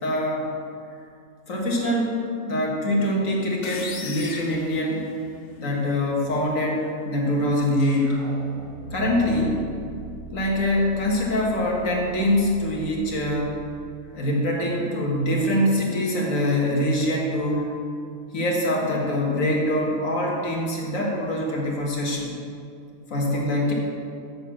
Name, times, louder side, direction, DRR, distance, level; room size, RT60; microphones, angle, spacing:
voice 1, 0.0-0.5 1.5-5.0 5.6-8.2 8.9-9.6 10.3-13.6 14.1-17.7 18.3-22.3 23.1-23.7, left 1 dB, 70° left, -2 dB, 2.0 m, -24 dB
sound 1, 3.6-5.6, left 4 dB, 40° left, 0.7 m, -37 dB
sound 2, 7.5-14.8, right 5 dB, 75° right, 2.1 m, -41 dB
7.3 x 6.8 x 7.4 m, 2.4 s
omnidirectional pair, 1.4 m